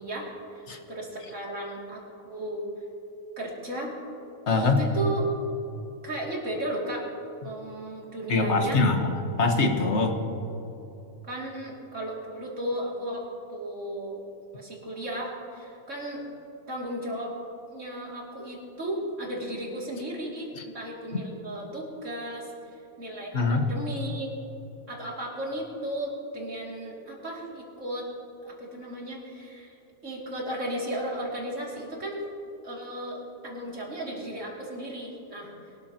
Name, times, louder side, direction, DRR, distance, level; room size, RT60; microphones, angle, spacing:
voice 1, 0.0-2.0 2.3-2.6 3.4-3.9 4.6-5.3 6.0-7.1 7.4-8.8 11.2-14.2 14.5-16.2 16.7-17.3 17.7-22.5 23.0-24.3 24.9-28.1 28.4-29.8 30.0-32.2 32.6-35.5, right 1 dB, 60° right, -3 dB, 3.0 m, -35 dB
voice 2, 4.5-4.8 8.3-10.2 20.6-20.7 23.3-23.7, left 3 dB, 55° left, 4 dB, 1.6 m, -23 dB
22.5 x 13.0 x 2.9 m, 2.9 s
omnidirectional pair, 1.4 m